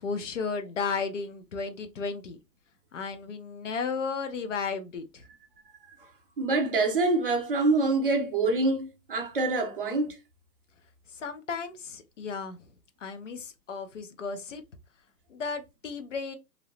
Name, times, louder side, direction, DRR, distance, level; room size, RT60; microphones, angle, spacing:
voice 1, 0.0-2.4 2.9-5.2 11.1-12.6 13.0-14.6 15.3-16.4, left 5 dB, 50° left, 0.6 m, -34 dB
voice 2, 6.4-10.1, right 3 dB, 35° right, 0.5 m, -25 dB
2.6 x 2.0 x 3.0 m
hypercardioid pair, 155°, 50 cm